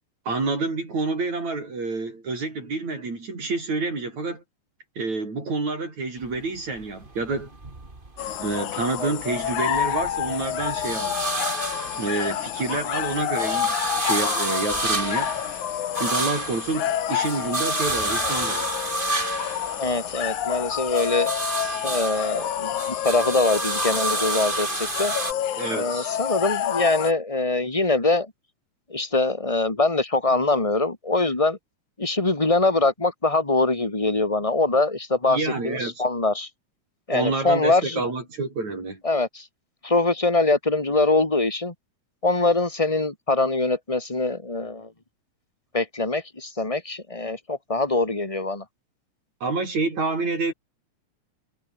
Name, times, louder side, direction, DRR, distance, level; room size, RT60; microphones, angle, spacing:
voice 1, 0.3-4.4 5.0-7.5 8.4-11.2 11.9-15.6 16.0-18.7 25.6-26.2 35.3-36.0 37.1-39.0 49.4-50.5, right 3 dB, 65° right, 7.9 m, -28 dB
sound 1, 6.2-8.6 9.0-12.6 13.0-20.4 20.8-25.3, right 2 dB, 15° right, 2.8 m, -30 dB
sound 2, 8.2-27.1, left 10 dB, 75° left, 3.0 m, -29 dB
voice 2, 19.8-21.3 21.8-25.1 25.7-28.3 28.9-31.6 32.0-36.5 37.1-38.0 39.0-39.5 39.8-41.7 42.2-44.9 45.7-48.6, left 3 dB, 10° left, 2.8 m, -23 dB
omnidirectional pair, 3.4 m